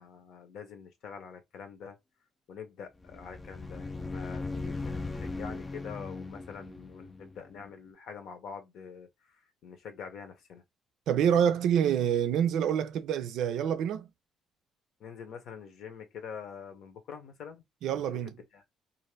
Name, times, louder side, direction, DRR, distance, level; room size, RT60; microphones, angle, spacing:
voice 1, 0.0-2.0 2.5-10.6 15.0-18.7, left 6 dB, 65° left, 0.8 m, -45 dB
sound 1, 3.0-7.7, left 3 dB, 15° left, 0.4 m, -38 dB
voice 2, 11.1-14.1 17.8-18.3, right 9 dB, 75° right, 0.4 m, -27 dB
2.6 x 2.5 x 3.1 m
cardioid pair, 145°, 0 cm